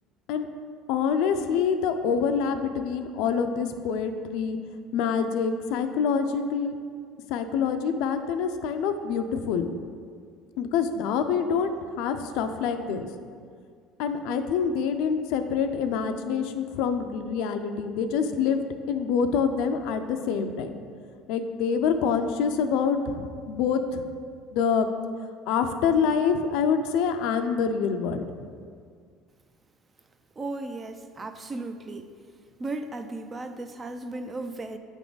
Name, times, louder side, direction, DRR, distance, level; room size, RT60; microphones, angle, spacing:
voice 1, 0.9-4.6 4.9-6.8 7.3-9.7 10.6-11.7 12.0-13.1 14.0-20.7 21.3-24.1 24.5-24.9 25.5-28.2, left 6 dB, 75° left, 7 dB, 0.4 m, -26 dB
voice 2, 30.4-32.1 32.6-34.8, right 2 dB, 25° right, 8 dB, 0.4 m, -35 dB
8.2 x 3.5 x 3.9 m, 2.1 s
supercardioid pair, 110°, 0 cm